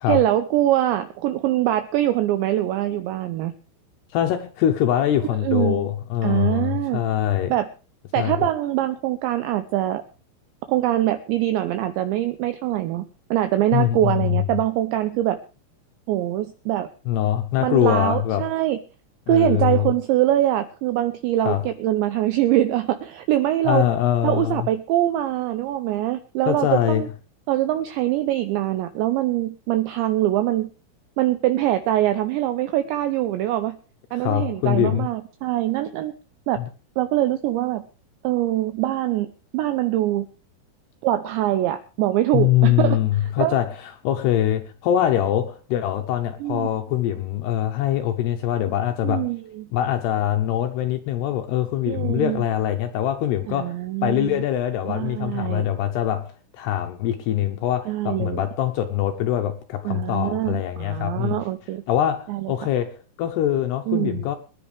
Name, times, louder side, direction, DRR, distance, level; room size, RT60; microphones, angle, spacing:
voice 1, 0.1-3.5 5.4-5.9 6.2-7.0 7.5-7.7 8.1-10.0 10.7-13.0 13.3-15.4 16.1-16.9 17.6-18.8 19.3-23.9 24.2-27.1 27.5-30.7 31.2-33.8 34.1-36.1 36.5-36.6 37.0-37.8 38.2-40.3 41.0-43.6 46.4-46.7 49.0-49.7 51.9-52.4 53.5-54.4 54.9-55.7 57.9-58.4 59.9-61.8 62.3-62.5 63.9-64.3, right 14 dB, 80° right, 2.6 m, -23 dB
voice 2, 4.1-7.5 8.2-8.3 13.7-14.4 17.1-18.5 19.3-19.9 21.5-21.6 23.6-24.7 26.5-27.0 34.1-35.1 36.6-36.7 42.3-43.8 44.0-49.3 49.7-61.4 61.9-64.4, left 11 dB, 85° left, 2.4 m, -23 dB
24.0 x 10.5 x 3.4 m
omnidirectional pair, 6.0 m